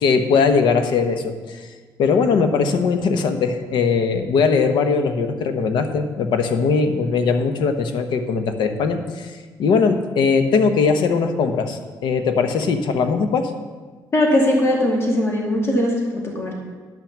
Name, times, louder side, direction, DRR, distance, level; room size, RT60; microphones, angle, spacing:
voice 1, 0.0-1.7 2.0-9.3 9.6-13.5, left 5 dB, 85° left, 8 dB, 1.0 m, -20 dB
voice 2, 14.1-16.5, left 1 dB, 35° left, -1 dB, 2.4 m, -19 dB
10.5 x 6.0 x 7.3 m, 1.4 s
cardioid pair, 120°, 8 cm